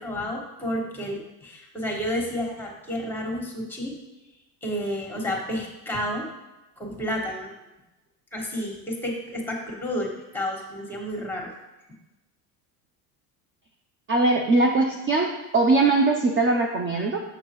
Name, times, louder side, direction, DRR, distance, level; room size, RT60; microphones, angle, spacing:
voice 1, 0.0-4.0 4.6-6.3 6.8-7.5 8.3-11.5, equal, 5° left, 0 dB, 1.6 m, -31 dB
voice 2, 14.1-17.2, right 3 dB, 25° right, 2 dB, 0.6 m, -21 dB
6.4 x 6.3 x 3.1 m, 1.0 s
supercardioid pair, 90°, 48 cm